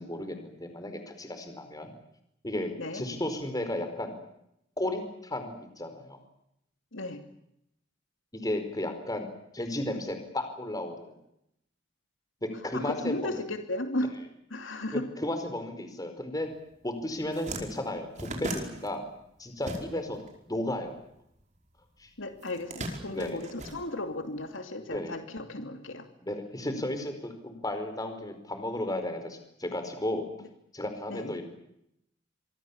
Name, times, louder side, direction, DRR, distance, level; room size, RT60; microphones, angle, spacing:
voice 1, 0.0-1.9 2.4-4.1 4.8-6.2 8.3-9.3 9.5-11.1 12.4-13.4 14.9-16.5 16.8-19.0 19.4-20.2 20.5-21.0 22.0-22.1 23.1-23.4 24.9-25.2 26.2-30.3 30.7-31.4, left 1 dB, 20° left, 7 dB, 4.8 m, -34 dB
voice 2, 6.9-7.2 12.7-14.1 14.5-15.1 19.9-20.0 22.2-26.1 31.1-31.4, left 1 dB, 75° left, 6 dB, 2.6 m, -35 dB
sound 1, 16.7-16.9 17.1-20.3 20.5-21.7 22.4-24.4, right 1 dB, 40° right, 4.9 m, -38 dB
27.5 x 24.0 x 7.3 m, 0.79 s
head